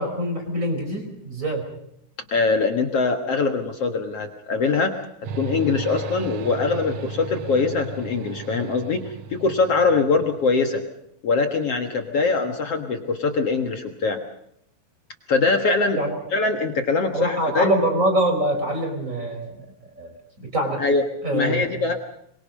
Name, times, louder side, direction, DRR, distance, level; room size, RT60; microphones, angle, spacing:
voice 1, 0.0-1.7 16.0-16.2 17.1-19.6 20.0-20.1 20.4-20.8 21.2-21.6, right 1 dB, 20° right, 4 dB, 4.8 m, -24 dB
voice 2, 2.3-5.0 5.4-10.8 11.2-14.2 15.3-16.0 16.3-17.7 20.8-21.0 21.3-21.9, left 4 dB, 55° left, 5 dB, 1.8 m, -22 dB
sound 1, 5.2-10.7, right 5 dB, 70° right, 2.1 m, -35 dB
25.5 x 22.5 x 5.3 m, 0.74 s
omnidirectional pair, 4.7 m